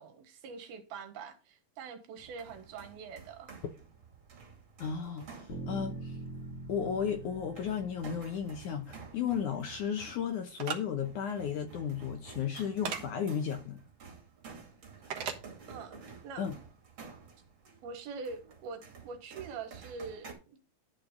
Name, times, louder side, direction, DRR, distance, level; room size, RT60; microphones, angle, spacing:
voice 1, 0.0-3.6 15.7-16.0 16.2-16.4 17.8-20.6, right 5 dB, 75° right, 3.2 m, -44 dB
sound 1, 2.2-20.3, right 5 dB, 35° right, 2.8 m, -52 dB
voice 2, 4.8-6.2 6.7-13.8 16.4-16.5, left 7 dB, 70° left, 2.0 m, -34 dB
sound 2, 5.5-9.5, right 3 dB, 45° left, 4.6 m, -44 dB
sound 3, 10.6-10.8 12.8-13.0 15.1-15.4, right 7 dB, 55° right, 1.9 m, -35 dB
12.0 x 4.6 x 5.1 m
omnidirectional pair, 4.5 m